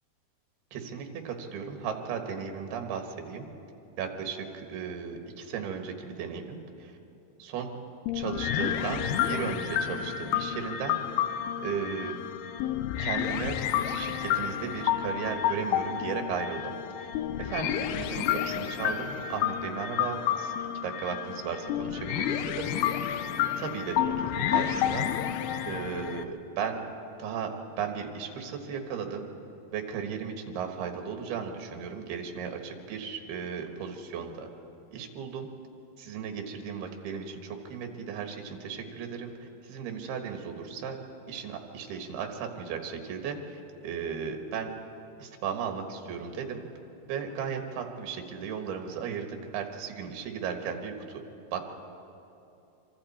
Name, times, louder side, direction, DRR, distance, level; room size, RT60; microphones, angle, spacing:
voice 1, 0.7-3.5 4.0-7.0 7.4-7.7 8.1-11.0 11.6-12.2 13.0-13.6 13.8-16.7 17.0-17.1 17.4-20.5 20.8-22.7 23.6-25.1 25.7-26.8 27.2-27.5 27.8-29.3 29.7-34.5 34.9-35.5 36.0-39.3 39.6-41.0 41.3-44.7 45.2-46.6 47.1-51.2 51.5-51.8, right 6 dB, 75° right, 4 dB, 3.5 m, -35 dB
sound 1, 8.1-26.2, left 10 dB, 80° left, 2.7 m, -30 dB
27.0 x 25.5 x 4.3 m, 2.9 s
omnidirectional pair, 4.7 m